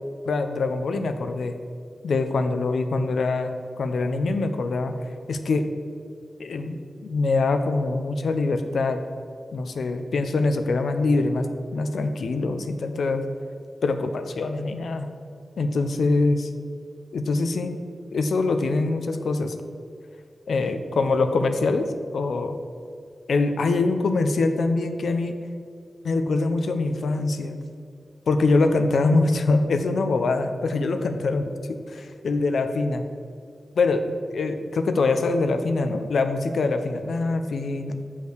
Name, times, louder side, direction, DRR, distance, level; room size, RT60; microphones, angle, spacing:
voice 1, 0.3-1.5 2.0-4.9 5.3-5.7 6.4-9.0 9.5-11.5 11.7-13.2 13.8-15.1 15.6-16.5 17.1-17.8 18.1-19.5 20.5-22.6 23.3-25.4 26.0-27.6 28.3-31.4 32.2-33.0 33.8-38.0, left 3 dB, 85° left, 7 dB, 0.5 m, -24 dB
6.5 x 5.6 x 6.3 m, 2.3 s
cardioid pair, 65°, 0 cm